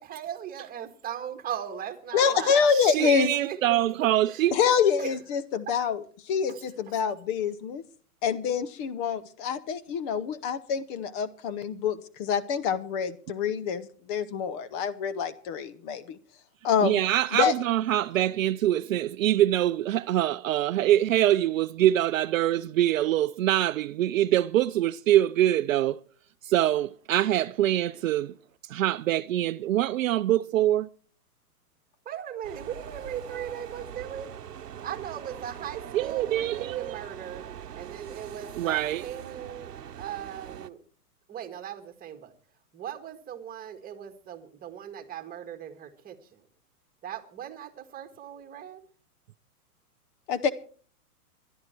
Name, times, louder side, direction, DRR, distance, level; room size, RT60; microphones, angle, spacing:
voice 1, 0.0-2.6 3.0-3.1 3.4-4.0 4.3-4.4 4.8-5.2 5.7-5.8 6.5-7.0 32.1-34.3 34.8-37.4 37.7-39.7 40.0-40.8 41.3-42.3 42.7-46.4 47.0-48.8, right 9 dB, 20° right, 1.9 m, -39 dB
voice 2, 2.1-3.3 4.5-6.0 6.3-7.8 8.2-16.2 16.6-17.0 17.3-17.5 50.3-50.5, left 7 dB, 35° left, 0.9 m, -26 dB
voice 3, 2.7-4.6 16.8-26.0 26.4-28.3 28.7-30.9 35.9-37.0 38.6-39.1, right 13 dB, 60° right, 0.6 m, -24 dB
sound 1, 32.4-40.7, right 9 dB, 85° right, 0.9 m, -42 dB
20.0 x 12.0 x 4.5 m
hypercardioid pair, 125°, 46 cm